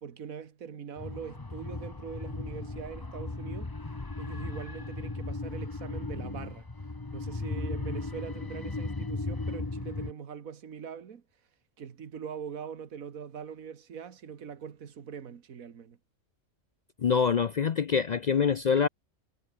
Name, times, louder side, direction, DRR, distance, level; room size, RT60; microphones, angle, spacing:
voice 1, 0.0-3.7 4.2-6.7 7.1-11.2 11.8-16.0, right 7 dB, 80° right, 1.9 m, -42 dB
sound 1, 1.0-10.1, left 2 dB, 15° left, 1.0 m, -36 dB
voice 2, 17.0-18.9, left 6 dB, 65° left, 0.4 m, -25 dB
omnidirectional pair, 1.4 m